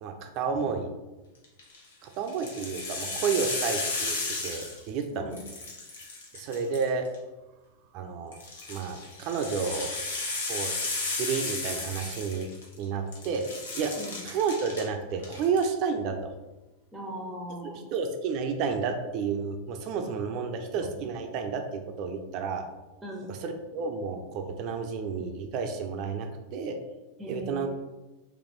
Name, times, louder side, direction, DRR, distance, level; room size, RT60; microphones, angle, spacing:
voice 1, 0.0-0.9 2.0-5.3 6.3-7.1 7.9-8.4 8.7-9.9 10.5-10.7 11.2-12.5 12.8-13.5 13.7-13.9 14.2-16.3 17.9-22.6 23.3-26.8 27.3-27.7, right 5 dB, 40° right, 5 dB, 0.5 m, -31 dB
sound 1, 1.4-1.8 2.3-5.0 5.3-7.2 8.3-12.8 13.1-14.8 15.2-15.6, left 3 dB, 65° left, 1.0 m, -34 dB
voice 2, 16.9-17.9 23.0-23.3 27.2-27.7, equal, 5° right, -1 dB, 0.7 m, -39 dB
4.0 x 3.0 x 3.1 m, 1.1 s
figure-of-eight pair, 90°, 0 cm